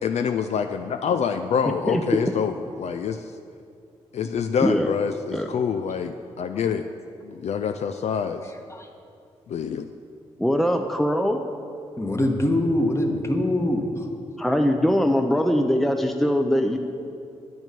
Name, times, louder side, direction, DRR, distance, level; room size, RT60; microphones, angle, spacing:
voice 1, 0.0-3.2 4.1-6.8 7.2-8.4 9.5-9.8, left 7 dB, 60° left, 7 dB, 0.4 m, -26 dB
voice 2, 1.7-2.2 4.6-4.9 5.3-5.5 10.4-11.4 14.4-16.8, equal, ahead, 5 dB, 0.6 m, -22 dB
voice 3, 8.4-8.9 12.0-13.9, left 1 dB, 20° left, 3 dB, 1.3 m, -23 dB
9.0 x 6.1 x 5.2 m, 2.5 s
hypercardioid pair, 40°, 13 cm